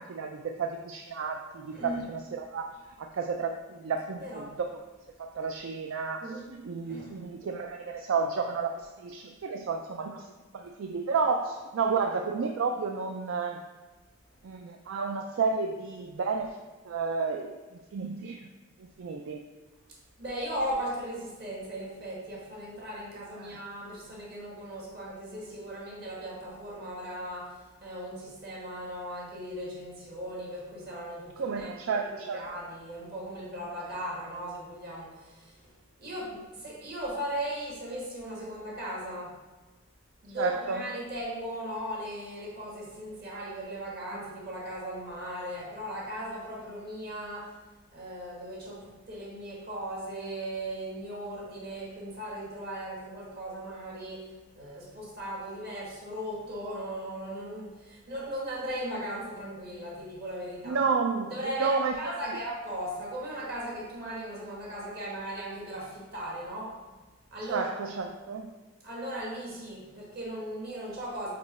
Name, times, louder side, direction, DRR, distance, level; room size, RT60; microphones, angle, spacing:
voice 1, 0.0-2.7 3.0-4.7 5.2-6.2 6.5-13.6 14.4-16.6 16.9-17.6 17.9-18.4 19.0-19.4 23.4-23.6 31.4-32.4 40.4-40.8 60.6-61.9 67.5-68.5, right 5 dB, 65° right, 4 dB, 0.3 m, -31 dB
voice 2, 1.7-2.0 4.2-4.5 6.2-6.5 6.9-7.2 19.9-31.9 32.3-35.7 36.0-39.4 40.2-47.6 47.9-60.8 61.3-66.8 67.3-67.7 68.8-71.3, equal, 45° right, -4 dB, 1.6 m, -37 dB
5.0 x 4.5 x 4.1 m, 1.2 s
head